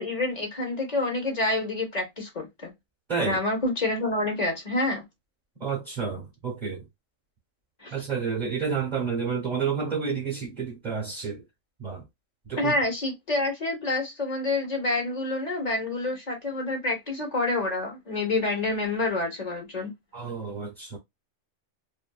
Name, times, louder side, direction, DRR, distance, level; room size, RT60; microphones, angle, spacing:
voice 1, 0.0-2.7 3.2-5.0 7.8-7.9 12.6-19.9, left 2 dB, 35° left, 1.0 m, -28 dB
voice 2, 5.6-6.8 7.9-11.4 11.8-12.0 12.5-12.7 20.1-21.0, right 6 dB, 40° right, 0.9 m, -30 dB
2.6 x 2.6 x 2.3 m
omnidirectional pair, 1.3 m